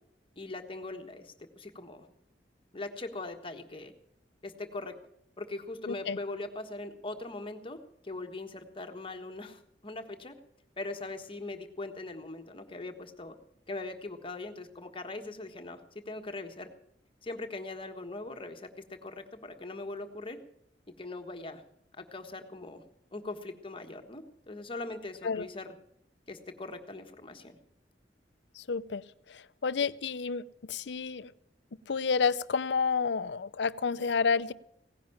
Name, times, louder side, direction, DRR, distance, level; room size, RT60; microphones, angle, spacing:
voice 1, 0.4-2.1 2.7-3.9 4.4-4.9 5.4-10.3 10.8-13.4 13.7-16.7 17.2-20.4 21.0-21.6 21.9-22.8 23.1-25.7 26.3-27.6, left 2 dB, 30° left, 5 dB, 1.4 m, -41 dB
voice 2, 5.9-6.2 25.2-25.4 28.6-29.0 29.3-30.4 30.7-31.3 31.9-34.5, left 5 dB, 75° left, 16 dB, 0.6 m, -30 dB
17.0 x 10.5 x 7.2 m, 0.75 s
head